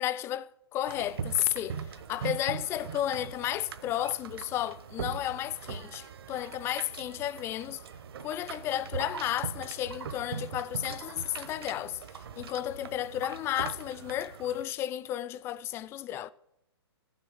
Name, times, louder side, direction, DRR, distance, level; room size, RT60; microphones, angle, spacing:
voice 1, 0.0-1.8 2.1-7.8 8.2-12.0 12.4-16.3, left 12 dB, 20° left, 0.4 m, -33 dB
sound 1, 0.8-14.6, right 7 dB, 65° right, 1.1 m, -41 dB
18.5 x 6.6 x 6.3 m
hypercardioid pair, 135°, 14 cm